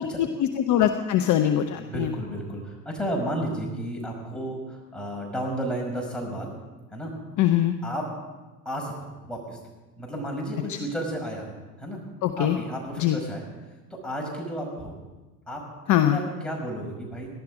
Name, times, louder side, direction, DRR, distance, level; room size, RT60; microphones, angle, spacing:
voice 1, 0.0-2.1 7.4-7.8 10.7-10.8 12.2-12.6 13.0-13.2 15.9-16.2, left 11 dB, 40° left, 7 dB, 0.9 m, -22 dB
voice 2, 1.7-6.5 6.9-7.1 7.8-8.1 8.7-9.6 10.0-11.5 11.8-12.0 12.4-13.5 14.0-14.9 15.5-15.6 16.1-17.3, right 1 dB, ahead, -2 dB, 5.5 m, -32 dB
17.5 x 12.5 x 5.1 m, 1.2 s
figure-of-eight pair, 70°, 47 cm